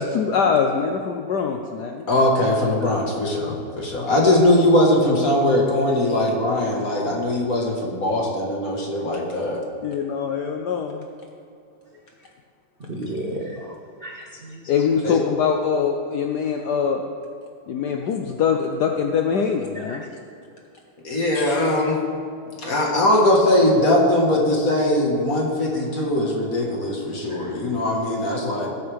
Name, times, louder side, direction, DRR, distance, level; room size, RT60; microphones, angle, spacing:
voice 1, 0.0-2.1 9.8-11.1 14.7-17.0 17.7-20.0, left 6 dB, 65° left, 3 dB, 1.1 m, -23 dB
voice 2, 2.1-9.6 15.0-15.2 21.0-22.0 22.6-28.7, left 1 dB, 45° left, -1 dB, 2.0 m, -20 dB
voice 3, 12.9-13.7 14.0-14.6 19.9-20.0 21.3-21.6 27.3-27.5, right 1 dB, 85° right, 1 dB, 0.5 m, -33 dB
20.0 x 8.2 x 3.5 m, 2.4 s
omnidirectional pair, 2.2 m